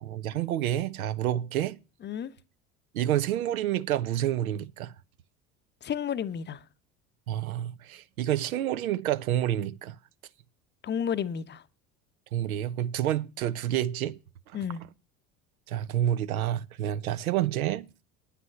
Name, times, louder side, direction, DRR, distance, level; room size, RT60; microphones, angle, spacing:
voice 1, 0.0-1.8 2.9-4.9 7.3-9.9 12.3-14.2 15.7-17.9, right 12 dB, 70° right, 0.7 m, -29 dB
voice 2, 5.8-6.6 10.8-11.6 14.5-14.8, left 8 dB, 25° left, 0.7 m, -31 dB
9.9 x 9.3 x 5.5 m
figure-of-eight pair, 65°, 44 cm